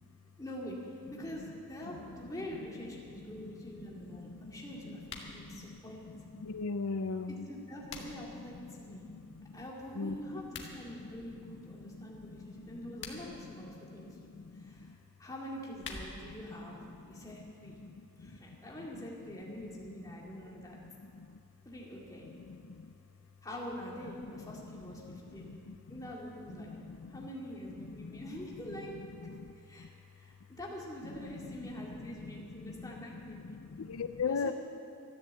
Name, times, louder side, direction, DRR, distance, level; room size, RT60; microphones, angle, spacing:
voice 1, 0.4-5.0 5.3-6.1 7.3-9.0 9.5-14.9 15.2-17.8 18.2-20.8 21.6-22.3 23.4-25.5 25.9-26.8 27.1-28.9 29.6-29.9 30.2-33.4 34.3-34.5, equal, 15° left, -3 dB, 2.3 m, -45 dB
sound 1, 5.0-5.4 7.4-8.4 10.4-10.7 12.8-13.4 15.4-16.4, left 4 dB, 55° left, 1.7 m, -46 dB
voice 2, 6.5-7.5 10.0-10.2 33.9-34.5, left 5 dB, 75° left, 9 dB, 0.5 m, -33 dB
13.5 x 11.0 x 7.9 m, 2.5 s
head